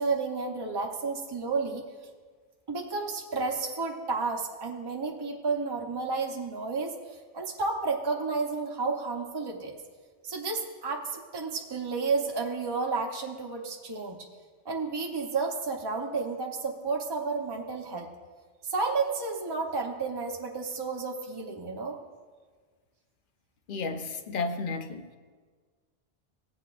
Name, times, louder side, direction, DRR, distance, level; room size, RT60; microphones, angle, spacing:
voice 1, 0.0-1.8 2.7-6.9 7.3-9.8 10.2-14.3 14.6-18.1 18.6-22.0, right 4 dB, 25° right, 1 dB, 0.8 m, -31 dB
voice 2, 23.7-25.1, left 4 dB, 55° left, 8 dB, 0.8 m, -32 dB
16.5 x 8.1 x 2.5 m, 1.5 s
omnidirectional pair, 1.1 m